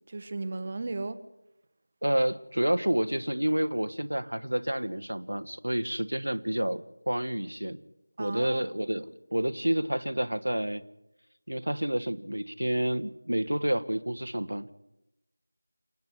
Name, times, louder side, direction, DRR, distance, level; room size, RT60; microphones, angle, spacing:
voice 1, 0.1-1.2 8.2-8.6, right 3 dB, 30° right, 11 dB, 1.1 m, -35 dB
voice 2, 2.0-7.8 8.2-10.8 11.5-14.7, right 1 dB, 75° right, 11 dB, 1.2 m, -29 dB
29.0 x 9.6 x 9.6 m, 0.87 s
figure-of-eight pair, 170°, 0 cm